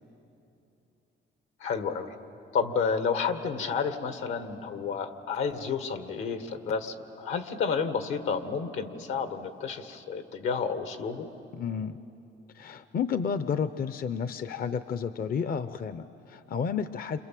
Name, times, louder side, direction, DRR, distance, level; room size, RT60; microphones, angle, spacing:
voice 1, 1.6-2.1 2.5-11.3, left 5 dB, 85° left, 8 dB, 1.8 m, -30 dB
voice 2, 11.5-12.0 12.5-17.2, left 6 dB, 50° left, 12 dB, 0.6 m, -31 dB
29.0 x 26.5 x 7.6 m, 2.9 s
cardioid pair, 90°, 20 cm